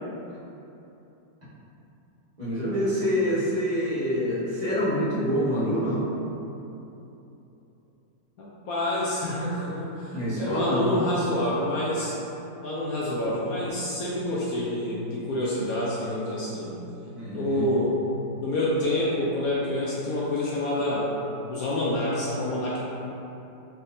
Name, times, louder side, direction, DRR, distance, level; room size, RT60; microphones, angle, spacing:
voice 1, 2.4-6.0 10.1-10.9 17.1-17.7, equal, 25° right, -12 dB, 1.5 m, -26 dB
voice 2, 8.4-12.1 12.6-16.8 17.3-18.0 18.4-21.1 21.5-22.8, left 1 dB, 70° left, -6 dB, 0.9 m, -27 dB
4.5 x 3.5 x 2.6 m, 3.0 s
omnidirectional pair, 1.9 m